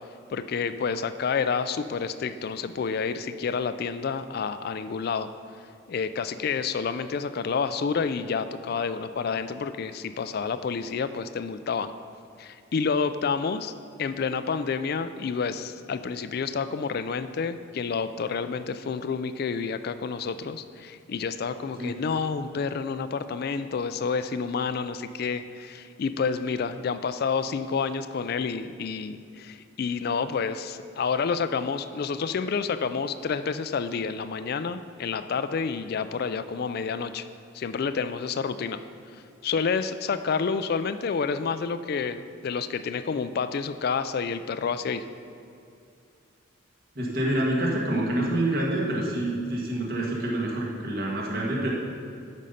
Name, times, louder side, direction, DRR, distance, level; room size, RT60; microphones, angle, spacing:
voice 1, 0.3-5.3 5.9-11.9 12.4-13.7 14.0-37.3 37.5-38.8 39.1-45.0, left 5 dB, 50° left, 11 dB, 0.3 m, -29 dB
voice 2, 47.0-51.7, right 1 dB, 50° right, -3 dB, 1.9 m, -27 dB
12.5 x 5.3 x 5.6 m, 2.5 s
head